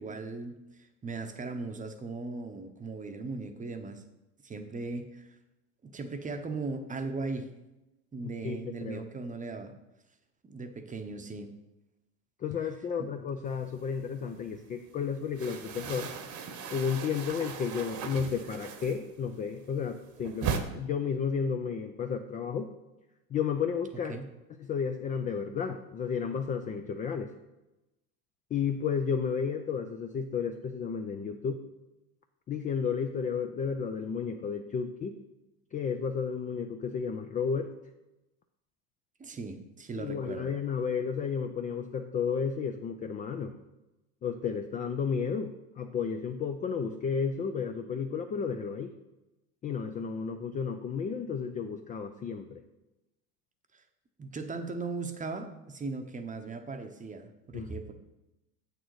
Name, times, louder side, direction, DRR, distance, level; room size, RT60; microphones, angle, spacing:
voice 1, 0.0-4.0 4.4-5.4 5.8-7.5 8.1-9.7 10.4-11.5 13.0-13.1 24.1-24.3 39.2-40.5 53.7-53.8 54.2-57.9, right 3 dB, 15° right, 7 dB, 0.8 m, -38 dB
voice 2, 8.2-9.1 12.4-16.1 16.7-22.7 23.3-24.2 24.6-27.3 28.5-31.6 32.5-35.2 35.7-37.7 40.0-43.6 44.2-48.9 49.6-52.6 57.5-57.7, left 6 dB, 20° left, 6 dB, 0.4 m, -32 dB
sound 1, 13.6-14.6 14.9-19.3 19.6-20.6, right 6 dB, 40° right, 1.1 m, -37 dB
7.9 x 6.6 x 4.7 m, 0.97 s
hypercardioid pair, 95°, 47 cm